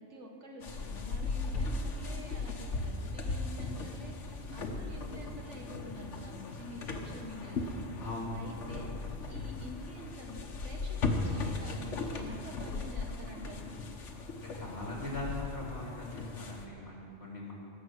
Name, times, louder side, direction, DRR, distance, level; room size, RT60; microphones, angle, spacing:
voice 1, 0.0-7.8 8.3-9.0 9.3-13.7, equal, 90° right, 1 dB, 1.9 m, -48 dB
sound 1, 0.6-16.7, left 3 dB, 90° left, 1.4 m, -37 dB
voice 2, 8.0-8.5 14.3-17.5, left 2 dB, 60° left, -4 dB, 3.6 m, -40 dB
18.0 x 7.3 x 6.3 m, 2.5 s
omnidirectional pair, 1.2 m